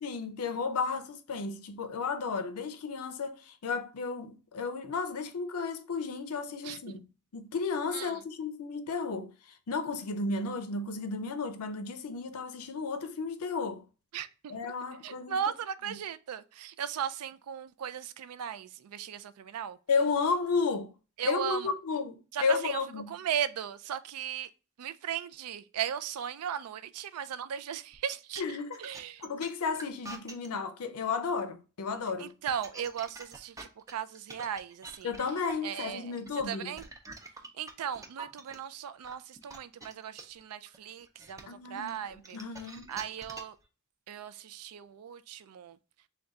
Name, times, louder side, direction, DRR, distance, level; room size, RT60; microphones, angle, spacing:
voice 1, 0.0-7.1 7.3-9.3 9.7-13.8 14.5-15.4 15.9-16.0 19.9-20.9 21.2-23.1 28.4-28.8 29.2-32.3 35.0-36.7 41.5-42.9, left 4 dB, 75° left, 0.5 m, -33 dB
voice 2, 14.1-14.5 15.0-19.8 21.2-21.7 22.3-22.8 23.1-24.5 24.8-28.4 28.8-29.2 32.2-35.1 35.6-36.2 36.5-36.8 37.6-42.4 42.9-43.6 44.1-45.8, right 9 dB, 75° right, 0.4 m, -37 dB
sound 1, 27.9-30.5 32.3-38.5 39.0-43.6, right 2 dB, 15° right, 0.5 m, -46 dB
3.6 x 2.3 x 3.9 m
head